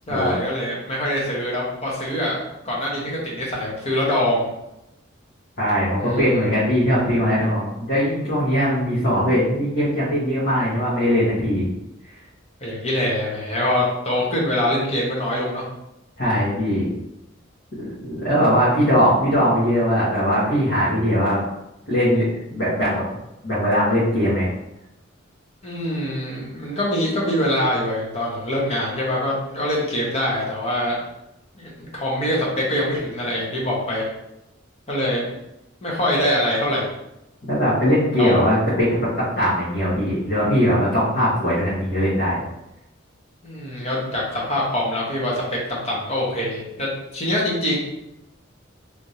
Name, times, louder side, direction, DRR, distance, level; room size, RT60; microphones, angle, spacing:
voice 1, 0.1-2.4 2.6-4.5 6.0-6.5 12.6-15.6 25.6-31.0 31.5-34.0 34.9-35.3 35.8-36.9 38.2-38.4 43.4-47.8, left 1 dB, 30° left, -4 dB, 1.1 m, -24 dB
voice 2, 5.6-11.6 16.2-16.9 17.8-21.4 21.9-22.2 22.5-23.0 23.4-24.5 37.5-42.4, equal, 60° left, -12 dB, 1.4 m, -20 dB
3.4 x 3.2 x 2.8 m, 0.87 s
head